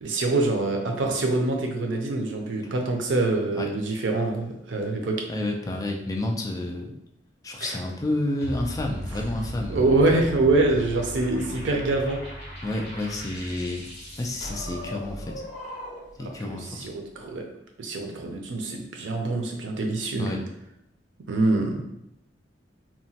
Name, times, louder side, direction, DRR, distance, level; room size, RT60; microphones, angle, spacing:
voice 1, 0.0-5.2 7.6-7.8 9.7-12.2 16.4-17.4 17.8-20.4 21.3-21.8, right 2 dB, 90° right, 2 dB, 0.5 m, -25 dB
voice 2, 5.3-6.9 7.4-10.0 12.6-13.8 14.2-15.4 16.2-16.9 20.2-20.4, left 1 dB, 20° left, 1 dB, 0.3 m, -30 dB
sound 1, 8.4-16.2, equal, 35° left, 1.1 m, -37 dB
2.9 x 2.2 x 2.7 m, 0.82 s
head